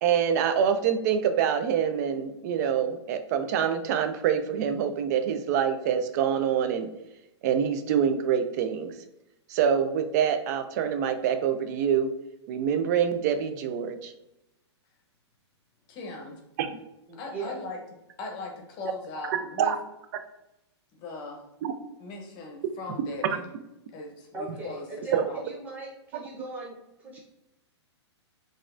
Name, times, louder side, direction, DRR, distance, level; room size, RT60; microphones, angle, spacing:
voice 1, 0.0-6.9 7.4-8.9 9.5-12.1 12.5-14.1 16.6-16.8 19.3-19.8 21.6-21.7 25.1-25.2, right 8 dB, 40° right, 9 dB, 0.3 m, -25 dB
voice 2, 15.9-16.4 17.2-17.8 18.2-19.8 20.9-21.4 22.0-23.4 23.9-25.4, left 3 dB, 30° left, 2 dB, 0.7 m, -39 dB
voice 3, 17.1-17.6 24.3-27.2, right 3 dB, 10° right, -4 dB, 1.0 m, -39 dB
3.9 x 2.5 x 2.5 m, 0.88 s
hypercardioid pair, 145°, 15 cm